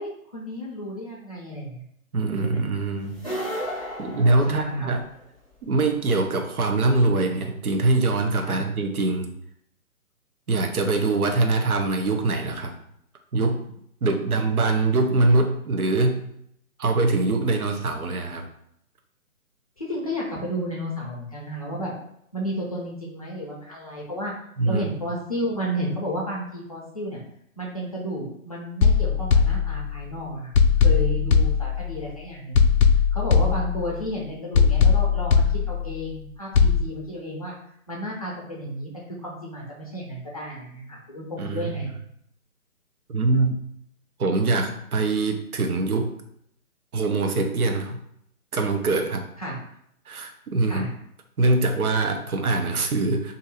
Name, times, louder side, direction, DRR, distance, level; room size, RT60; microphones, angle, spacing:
voice 1, 0.0-1.8 2.4-2.6 4.5-4.9 8.4-8.6 19.8-21.9 22.3-24.3 24.6-27.2 27.6-30.5 30.8-32.7 33.1-37.5 37.9-38.9 39.2-41.9 49.4-49.6 50.6-50.9, equal, 25° left, -4 dB, 0.5 m, -32 dB
voice 2, 2.1-3.2 4.0-5.0 5.6-9.3 10.5-12.7 13.3-16.2 16.8-18.5 24.6-24.8 41.4-41.7 43.1-43.5 44.2-46.1 46.9-48.0 48.5-49.2 50.1-50.8 51.4-53.4, right 3 dB, 75° right, 4 dB, 0.8 m, -23 dB
sound 1, 3.1-5.2, equal, 5° right, 0.8 m, -33 dB
sound 2, 28.8-30.1 30.5-32.1 32.5-34.1 34.5-36.1 36.5-36.8, left 6 dB, 80° left, 0.5 m, -19 dB
2.7 x 2.6 x 4.2 m, 0.72 s
figure-of-eight pair, 150°, 44 cm